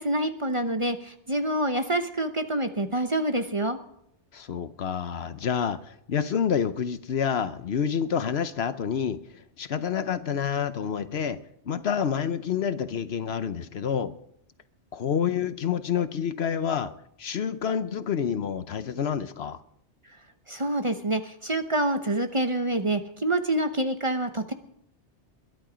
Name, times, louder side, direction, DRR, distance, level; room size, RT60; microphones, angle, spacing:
voice 1, 0.0-3.8 20.5-24.5, right 1 dB, 30° right, 0.9 m, -27 dB
voice 2, 4.3-14.1 14.9-16.9 17.2-19.6, left 7 dB, 65° left, 1.0 m, -28 dB
21.5 x 11.5 x 5.1 m
omnidirectional pair, 1.2 m